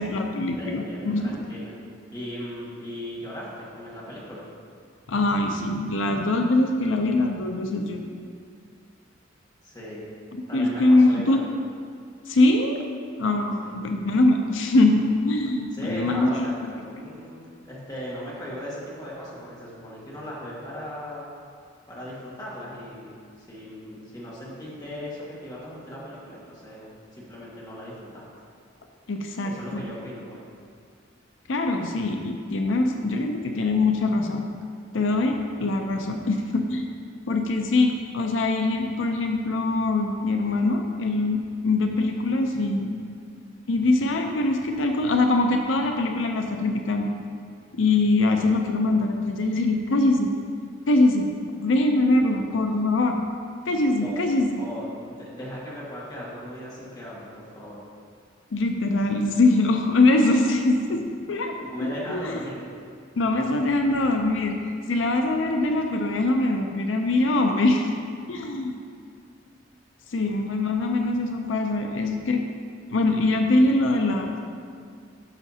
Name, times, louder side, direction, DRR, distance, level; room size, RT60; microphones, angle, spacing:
voice 1, 0.0-1.4 5.1-8.0 10.3-11.4 12.3-12.8 13.1-16.7 29.1-29.8 31.5-34.4 34.9-36.9 37.3-43.0 43.7-47.1 47.7-50.3 50.9-51.3 51.6-53.2 53.7-54.6 58.5-61.0 61.3-62.4 63.1-64.6 64.9-67.9 68.3-68.8 70.1-72.4 72.9-74.4, left 2 dB, 80° left, 3 dB, 0.6 m, -23 dB
voice 2, 0.6-1.7 2.1-4.5 9.6-10.0 10.5-11.4 13.6-13.7 15.7-21.3 21.9-28.2 29.4-30.4 54.0-54.1 54.5-57.8 61.7-62.6, equal, 20° left, -7 dB, 2.0 m, -38 dB
12.0 x 6.2 x 2.8 m, 2.2 s
head